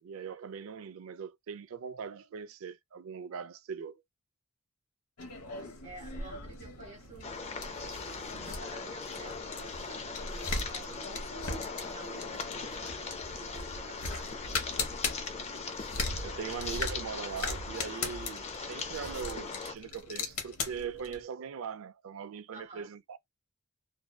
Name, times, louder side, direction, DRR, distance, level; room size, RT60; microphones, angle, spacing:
voice 1, 0.0-4.0 16.2-23.2, right 6 dB, 70° right, 0.4 m, -40 dB
sound 1, 5.2-21.2, left 3 dB, 85° left, 0.8 m, -39 dB
voice 2, 5.8-14.3 22.5-22.9, right 3 dB, 40° right, 0.9 m, -51 dB
sound 2, 7.2-19.7, left 4 dB, 30° left, 0.4 m, -40 dB
2.6 x 2.2 x 2.2 m
head